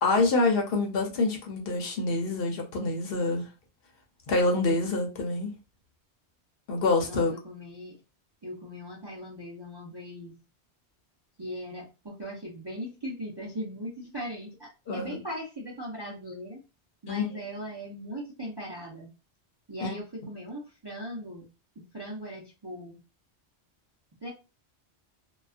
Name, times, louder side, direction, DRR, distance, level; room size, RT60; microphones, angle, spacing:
voice 1, 0.0-3.5 4.3-5.5 6.7-7.3 14.9-15.2 17.1-17.3 19.8-19.9, left 3 dB, 65° left, 0.8 m, -26 dB
voice 2, 7.0-7.9 8.4-10.4 11.4-16.6 17.0-19.1 19.7-21.5 21.9-23.0 24.2-24.3, equal, 35° right, 0.4 m, -39 dB
2.3 x 2.2 x 2.4 m
omnidirectional pair, 1.1 m